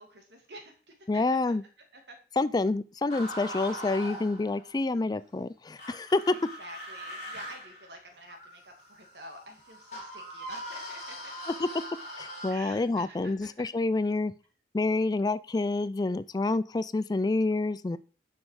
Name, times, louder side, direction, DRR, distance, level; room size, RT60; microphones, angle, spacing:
voice 1, 0.0-1.5 1.9-2.2 3.5-3.8 6.6-11.2 12.5-13.5, right 1 dB, 75° right, 4 dB, 2.5 m, -48 dB
voice 2, 1.1-1.6 2.4-6.3 11.6-11.7 12.2-14.3 14.7-18.0, left 3 dB, 20° left, 16 dB, 0.3 m, -28 dB
sound 1, 3.1-4.8 5.8-12.5, equal, 40° left, 4.2 m, -41 dB
9.9 x 6.2 x 4.8 m, 0.38 s
head